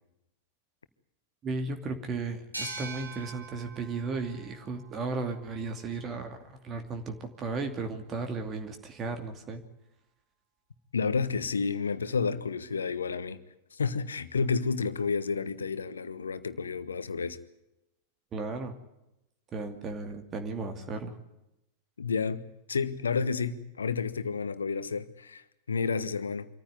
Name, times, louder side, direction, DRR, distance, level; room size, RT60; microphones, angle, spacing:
voice 1, 1.4-6.4 6.6-9.6 18.3-18.8 19.5-21.2, right 3 dB, 30° right, 2.5 m, -35 dB
sound 1, 2.5-5.9, right 2 dB, 85° right, 4.1 m, -43 dB
voice 2, 10.9-13.4 13.7-17.4 22.0-22.4 22.7-26.5, left 5 dB, 70° left, 1.3 m, -30 dB
25.5 x 14.5 x 9.7 m
figure-of-eight pair, 90°, 0 cm